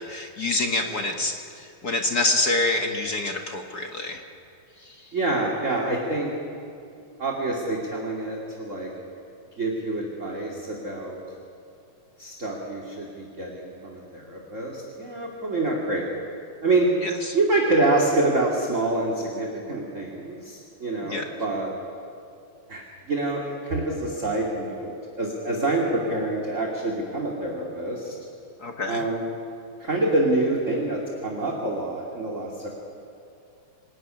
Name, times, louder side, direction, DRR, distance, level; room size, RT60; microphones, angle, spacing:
voice 1, 0.0-4.2 17.0-17.4 21.0-21.3 28.6-29.0, left 2 dB, 40° left, 3 dB, 1.6 m, -27 dB
voice 2, 5.1-6.3 6.9-8.9 9.6-11.2 12.2-16.1 16.6-16.9 17.3-21.7 22.7-28.1 28.9-29.2 29.8-32.7, right 2 dB, 25° right, -2 dB, 2.7 m, -26 dB
26.5 x 19.0 x 9.8 m, 2.5 s
omnidirectional pair, 3.5 m